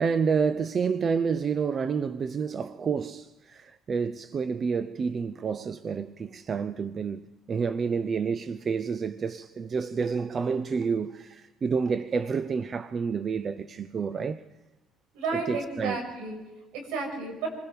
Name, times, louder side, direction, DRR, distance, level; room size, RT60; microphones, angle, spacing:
voice 1, 0.0-14.4 15.3-16.0, right 5 dB, 45° right, 0.7 m, -29 dB
voice 2, 15.1-16.4 16.7-17.5, right 4 dB, 85° right, 6.8 m, -32 dB
27.0 x 20.5 x 5.2 m
supercardioid pair, 75°, 0 cm